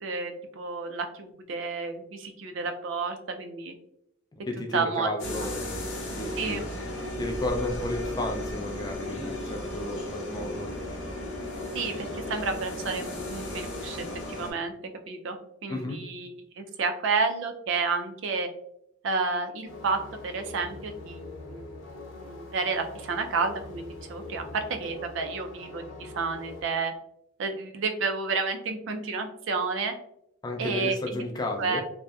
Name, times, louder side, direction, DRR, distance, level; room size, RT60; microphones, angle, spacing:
voice 1, 0.0-3.7 4.7-5.1 6.4-6.6 11.7-14.7 15.1-15.4 15.6-18.5 19.0-20.0 20.2-21.6 22.2-23.8 24.1-26.9 27.4-29.9 30.6-31.2 31.6-31.8, right 4 dB, 65° right, 6 dB, 0.4 m, -30 dB
voice 2, 4.4-6.7 7.2-11.0 15.7-16.0 30.4-31.8, left 2 dB, 20° left, 3 dB, 0.3 m, -33 dB
sound 1, 5.2-14.5, left 1 dB, 65° left, 0.6 m, -35 dB
sound 2, 19.6-26.6, left 2 dB, 85° left, 0.9 m, -43 dB
2.6 x 2.1 x 2.2 m, 0.75 s
head